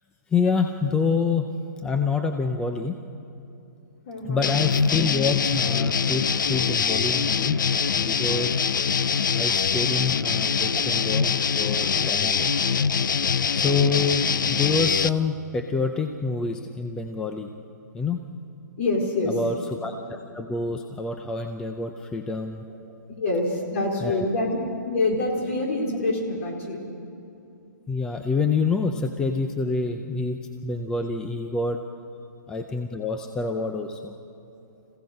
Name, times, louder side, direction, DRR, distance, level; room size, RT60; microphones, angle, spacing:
voice 1, 0.3-1.5 1.8-3.0 4.2-7.6 8.0-8.5 9.3-12.6 13.5-17.5 17.9-18.2 19.3-22.6 24.0-24.3 27.9-31.8 32.5-34.2, left 4 dB, 5° left, 5 dB, 0.5 m, -27 dB
voice 2, 4.1-4.5 18.8-19.4 23.2-24.6 24.8-26.8, left 2 dB, 45° left, 1 dB, 3.8 m, -26 dB
sound 1, 4.4-15.1, left 6 dB, 85° left, 0.6 m, -23 dB
26.0 x 16.0 x 6.5 m, 2.8 s
hypercardioid pair, 160°, 10 cm